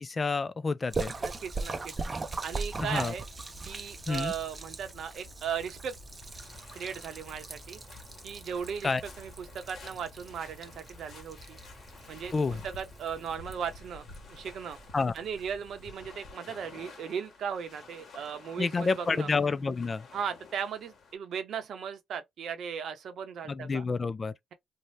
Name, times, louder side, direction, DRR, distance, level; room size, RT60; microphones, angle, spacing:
voice 1, 0.0-1.1 2.8-3.1 4.1-4.3 8.8-9.0 12.3-12.6 14.9-15.1 18.6-20.1 23.5-24.3, left 4 dB, 30° left, 0.3 m, -29 dB
Splash splatter, 0.9-15.9, right 3 dB, 25° right, 0.5 m, -41 dB
Rain, 1.1-13.4, left 1 dB, 5° right, 1.2 m, -53 dB
voice 2, 1.2-1.9 2.4-3.2 3.6-6.0 6.7-7.8 8.2-11.6 12.1-12.3 12.6-14.8 15.1-19.3 20.1-23.8, right 7 dB, 65° right, 0.7 m, -37 dB
sound 1, 6.1-21.1, left 3 dB, 60° left, 1.0 m, -51 dB
2.6 x 2.1 x 3.1 m
cardioid pair, 90°, 0 cm